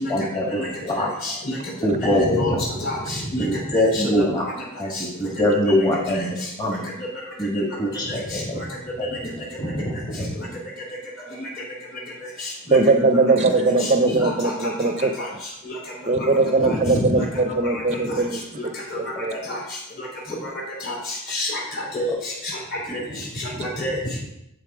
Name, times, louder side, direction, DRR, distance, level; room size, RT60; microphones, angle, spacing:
voice 1, 0.1-1.1 1.8-2.4 3.4-4.4 4.8-6.8 7.4-8.6 9.0-9.1 19.3-19.4 22.1-22.2, left 1 dB, 20° left, -2 dB, 1.6 m, -23 dB
voice 2, 2.1-3.4 3.7-4.0 13.5-13.6 14.0-14.2 15.2-15.3 16.6-17.2 18.1-18.2 19.5-19.6 20.9-21.0 21.3-21.5 21.9-22.1 22.9-23.0 23.6-24.0, equal, 45° left, -4 dB, 3.7 m, -26 dB
voice 3, 12.7-15.1 16.1-18.4 19.0-19.3, right 3 dB, 30° right, 8 dB, 0.6 m, -20 dB
12.5 x 4.2 x 4.9 m, 0.82 s
head